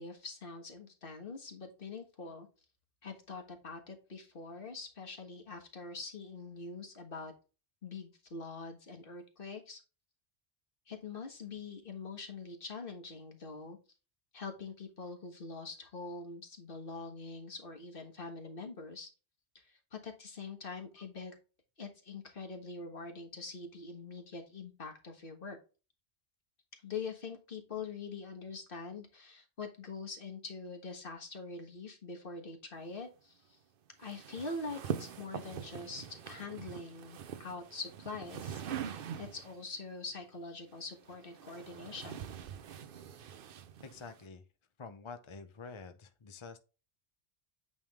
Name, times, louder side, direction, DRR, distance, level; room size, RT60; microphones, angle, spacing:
voice 1, 0.0-2.5 3.0-7.3 7.8-9.8 10.9-13.8 14.3-19.1 19.6-21.4 21.8-25.6 26.8-33.6 34.0-42.2, left 4 dB, 55° left, 4 dB, 1.6 m, -44 dB
sound 1, 34.0-39.6 40.7-44.2, right 8 dB, 60° right, 0.8 m, -43 dB
voice 2, 43.8-44.4 44.8-46.6, left 4 dB, 35° left, 9 dB, 0.6 m, -48 dB
8.8 x 3.5 x 3.4 m, 0.32 s
omnidirectional pair, 1.1 m